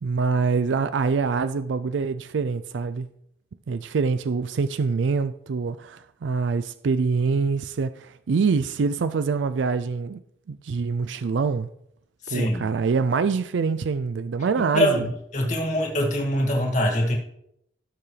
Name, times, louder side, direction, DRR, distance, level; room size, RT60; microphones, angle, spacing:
voice 1, 0.0-3.1 3.7-10.2 10.5-11.7 12.3-15.0, right 5 dB, 85° right, 0.4 m, -25 dB
voice 2, 12.2-12.7 14.7-17.1, left 1 dB, 40° left, 2.2 m, -24 dB
17.5 x 6.9 x 3.3 m
head